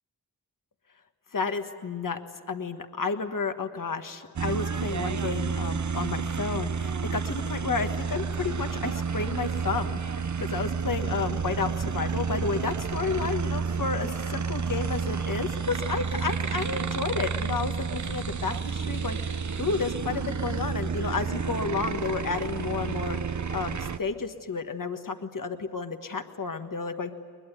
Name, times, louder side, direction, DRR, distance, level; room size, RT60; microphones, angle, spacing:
voice 1, 1.3-2.2 2.5-27.2, left 4 dB, 60° left, 7 dB, 1.5 m, -31 dB
sound 1, 4.4-24.0, right 5 dB, 50° right, 0.8 m, -30 dB
21.5 x 21.0 x 9.3 m, 2.1 s
cardioid pair, 45°, 37 cm